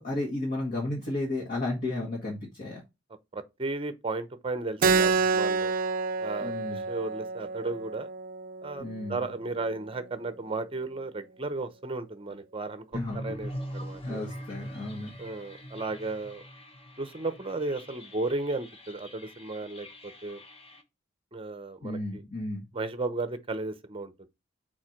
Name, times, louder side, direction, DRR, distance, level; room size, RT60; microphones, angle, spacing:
voice 1, 0.0-2.8 6.4-6.8 8.8-9.2 12.9-13.3 14.0-15.1 21.8-22.6, left 2 dB, 45° left, 1.9 m, -33 dB
voice 2, 3.3-5.7 6.2-8.1 8.6-12.8 13.2-14.2 15.2-16.4 17.0-20.4 21.3-22.2 22.7-24.3, right 3 dB, 25° right, 0.7 m, -34 dB
Keyboard (musical), 4.8-9.9, right 4 dB, 45° right, 0.4 m, -29 dB
sound 1, 12.9-20.8, equal, 30° left, 1.2 m, -42 dB
4.8 x 4.4 x 5.8 m
head